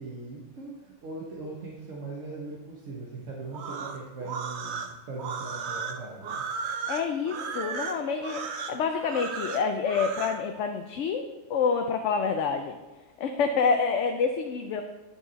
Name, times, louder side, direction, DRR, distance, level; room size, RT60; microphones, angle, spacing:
voice 1, 0.0-6.5, right 3 dB, 85° right, -3 dB, 1.5 m, -40 dB
sound 1, 3.5-10.4, right 5 dB, 65° right, 0.9 m, -35 dB
voice 2, 6.9-11.2 11.5-12.8 13.2-14.8, left 5 dB, 75° left, 5 dB, 1.0 m, -27 dB
10.5 x 6.0 x 4.0 m, 1.2 s
omnidirectional pair, 1.3 m